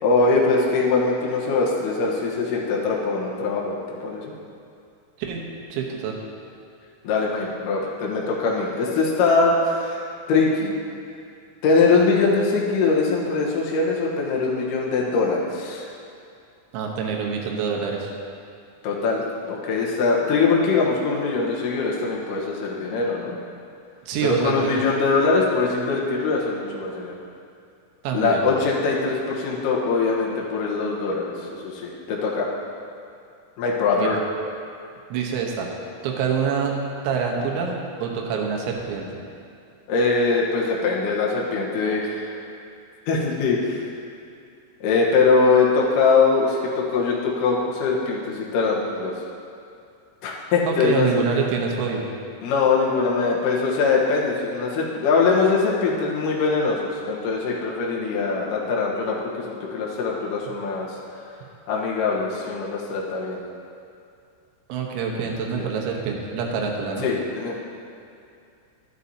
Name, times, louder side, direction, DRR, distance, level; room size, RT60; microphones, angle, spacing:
voice 1, 0.0-4.3 7.0-10.7 11.6-15.8 18.8-23.4 24.2-27.2 28.1-32.5 33.6-34.2 39.9-42.3 43.1-43.9 44.8-49.1 50.2-51.2 52.4-61.0 61.7-63.4 65.6-65.7 67.0-67.6, left 4 dB, 80° left, -3 dB, 1.9 m, -22 dB
voice 2, 5.7-6.2 16.7-18.1 24.1-24.7 28.0-28.4 34.0-34.2 35.1-35.7 36.0-36.7 37.0-39.2 50.6-52.0 64.7-67.1, right 6 dB, 75° right, 0 dB, 3.2 m, -26 dB
13.0 x 11.0 x 2.8 m, 2.5 s
omnidirectional pair, 5.7 m